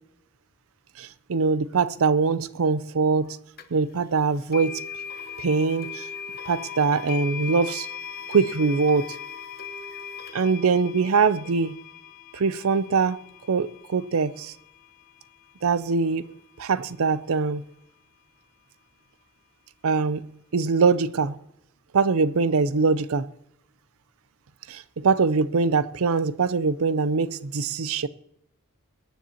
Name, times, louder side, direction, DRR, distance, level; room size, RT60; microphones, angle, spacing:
voice 1, 1.0-3.4 3.7-4.8 5.4-6.0 6.5-7.9 8.3-9.1 10.3-11.8 12.3-13.2 13.5-14.5 15.6-16.2 16.6-17.6 19.8-20.2 20.5-21.4 21.9-23.2 24.7-28.1, right 4 dB, 65° right, 0.5 m, -23 dB
sound 1, 3.6-3.7 4.5-15.5, left 7 dB, 45° left, 1.1 m, -39 dB
23.0 x 10.0 x 2.9 m
head